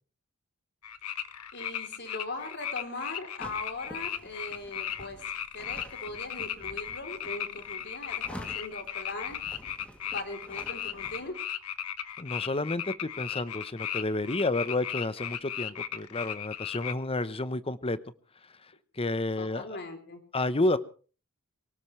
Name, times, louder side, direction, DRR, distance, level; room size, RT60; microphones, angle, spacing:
sound 1, 0.8-16.9, left 10 dB, 85° left, 1.2 m, -36 dB
voice 1, 1.5-5.2 5.5-9.4 10.1-11.3 19.4-20.2, left 2 dB, 50° left, 6 dB, 3.5 m, -39 dB
sound 2, 3.4-11.3, equal, 5° left, 2.7 m, -49 dB
voice 2, 12.2-18.0 19.0-19.8 20.3-20.8, left 2 dB, 25° left, 14 dB, 0.9 m, -30 dB
24.5 x 18.0 x 3.3 m, 0.39 s
head